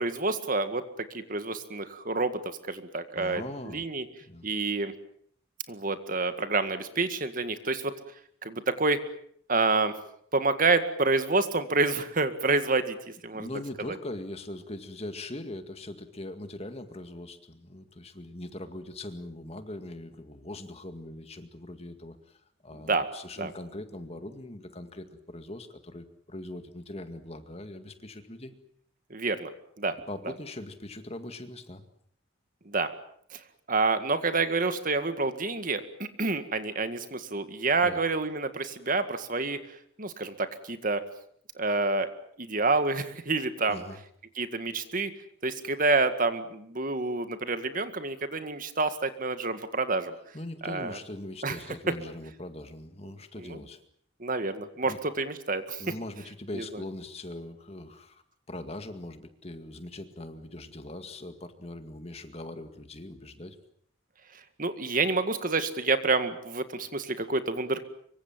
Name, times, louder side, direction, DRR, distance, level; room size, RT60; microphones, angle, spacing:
voice 1, 0.0-2.4 2.7-4.0 4.4-4.9 5.7-8.0 8.4-9.0 9.5-9.9 10.3-13.0 13.2-13.5 13.9-14.0 22.9-23.1 23.4-23.5 29.1-29.5 29.8-29.9 32.7-32.9 33.3-33.4 33.7-39.6 40.0-41.0 41.6-42.1 42.4-43.8 44.4-45.1 45.4-50.2 50.6-51.0 51.4-51.6 53.4-53.6 54.2-55.8 56.5-56.7 64.6-67.8, right 3 dB, 40° right, 10 dB, 1.9 m, -28 dB
voice 2, 3.2-3.8 4.2-4.5 13.3-28.5 30.1-31.8 37.8-38.0 43.7-44.0 50.3-53.8 54.8-55.0 55.8-58.2 58.5-63.6, left 1 dB, 30° left, 9 dB, 2.0 m, -41 dB
25.5 x 24.0 x 7.5 m, 0.64 s
head